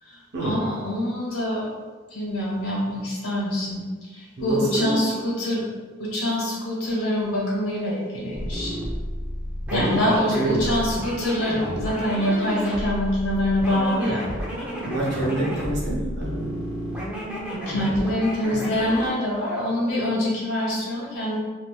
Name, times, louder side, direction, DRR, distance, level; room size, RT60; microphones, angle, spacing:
voice 1, 0.0-1.7 2.1-3.8 4.1-5.6 6.0-8.8 9.7-14.2 17.5-21.4, left 1 dB, 80° left, -6 dB, 1.1 m, -25 dB
voice 2, 4.4-5.0 9.7-10.0 10.3-10.6 14.9-16.6, right 1 dB, 50° right, -4 dB, 0.8 m, -27 dB
sound 1, 8.3-19.1, equal, 5° right, 0.5 m, -31 dB
3.4 x 2.6 x 2.3 m, 1.4 s
head